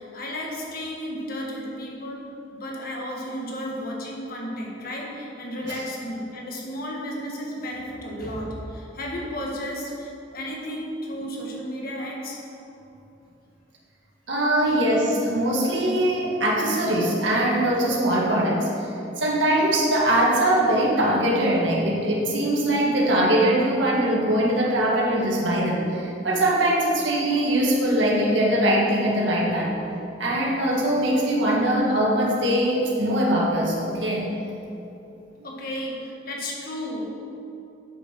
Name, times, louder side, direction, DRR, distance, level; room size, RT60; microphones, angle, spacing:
voice 1, 0.0-12.5 12.7-12.8 35.4-37.1, equal, 50° left, -2 dB, 1.6 m, -33 dB
voice 2, 14.3-18.9 19.2-29.8 30.2-34.3, right 1 dB, 75° right, -4 dB, 2.0 m, -22 dB
8.0 x 6.7 x 6.1 m, 2.8 s
head